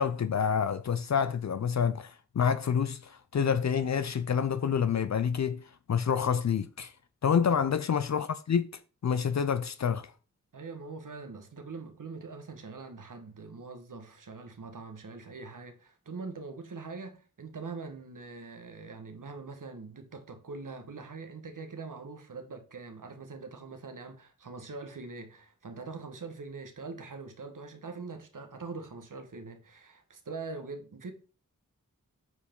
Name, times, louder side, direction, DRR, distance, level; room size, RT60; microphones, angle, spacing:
voice 1, 0.0-6.9 7.2-8.7 9.0-10.1, left 7 dB, 55° left, 0.5 m, -28 dB
voice 2, 10.5-31.1, right 4 dB, 75° right, 1.4 m, -43 dB
8.4 x 4.8 x 3.7 m
wide cardioid pair, 55°, 32 cm